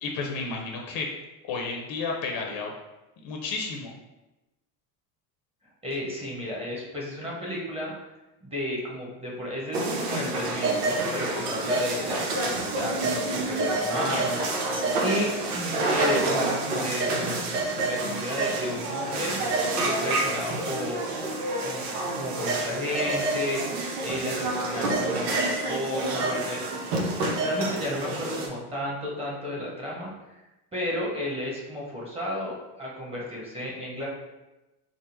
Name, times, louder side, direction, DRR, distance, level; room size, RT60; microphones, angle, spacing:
voice 1, 0.0-1.1 1.5-2.7 3.2-3.9, left 4 dB, 50° left, 0 dB, 0.8 m, -32 dB
voice 2, 5.8-7.9 8.4-14.7 15.0-19.4 19.8-21.1 21.6-23.6 24.0-26.7 27.4-30.1 30.7-34.1, left 1 dB, 10° right, -4 dB, 1.1 m, -33 dB
sound 1, 9.7-28.5, right 2 dB, 80° right, 0.9 m, -28 dB
3.8 x 2.0 x 4.4 m, 1.0 s
supercardioid pair, 100°, 47 cm